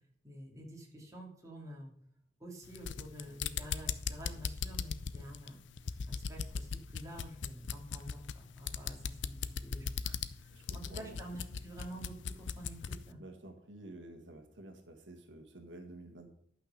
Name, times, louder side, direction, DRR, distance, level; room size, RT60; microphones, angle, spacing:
voice 1, 0.2-1.9 2.4-5.6 6.1-13.2, right 1 dB, 20° right, -2 dB, 2.6 m, -49 dB
sound 1, 2.6-13.1, left 6 dB, 85° left, 0.5 m, -39 dB
voice 2, 10.5-11.2 13.2-16.3, right 2 dB, 85° right, 4 dB, 1.5 m, -51 dB
11.5 x 5.9 x 6.5 m, 0.66 s
head